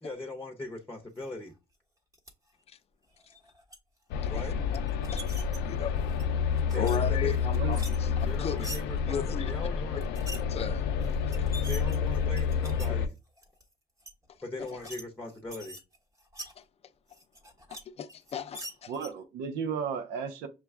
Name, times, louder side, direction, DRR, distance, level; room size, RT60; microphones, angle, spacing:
voice 1, 0.0-1.5 4.3-4.6 6.7-7.4 8.2-10.0 11.7-13.2 14.4-15.8, left 2 dB, 10° left, 0.8 m, -40 dB
sound 1, 2.1-2.3 3.2-3.8 4.7-5.6 6.0-7.0 7.3-8.8 10.0-10.4 11.0-11.1 11.3-12.9 13.4-13.6 14.0-14.1 14.6-15.0 15.3-16.5 17.1-17.8 18.1-19.1, right 1 dB, 20° right, 1.0 m, -44 dB
sound 2, 4.1-13.1, left 6 dB, 90° left, 0.5 m, -29 dB
voice 2, 5.6-5.9 6.7-8.7 9.1-9.5 10.5-10.8 14.6-14.7 17.7-18.9, left 7 dB, 35° left, 0.4 m, -35 dB
voice 3, 18.9-20.5, right 6 dB, 90° right, 0.6 m, -34 dB
6.0 x 2.2 x 3.4 m
cardioid pair, 110°, 17 cm